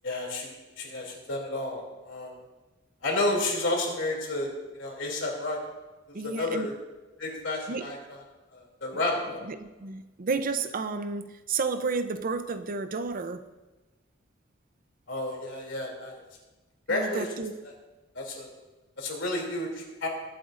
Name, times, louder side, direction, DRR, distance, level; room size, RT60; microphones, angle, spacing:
voice 1, 0.0-2.3 3.0-5.6 6.1-6.7 7.2-8.2 8.5-9.5 15.1-16.2 16.9-17.2 18.1-18.5 19.0-20.1, left 2 dB, 90° left, 0 dB, 2.8 m, -31 dB
voice 2, 6.1-6.7 7.7-7.9 9.5-13.4 16.9-17.5, right 4 dB, 50° right, 10 dB, 0.6 m, -31 dB
21.0 x 7.9 x 2.5 m, 1.1 s
head